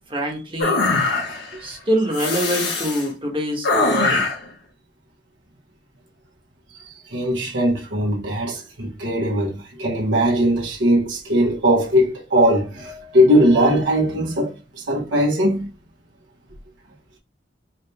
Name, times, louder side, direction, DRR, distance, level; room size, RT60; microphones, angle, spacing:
voice 1, 0.1-0.8 1.6-4.3, equal, 30° right, 1.3 m, -24 dB
sound 1, 0.6-1.5 2.1-3.1 3.6-4.5, left 3 dB, 70° left, 1.5 m, -21 dB
voice 2, 6.8-15.7, equal, 90° right, 1.5 m, -20 dB
4.9 x 2.9 x 3.5 m
head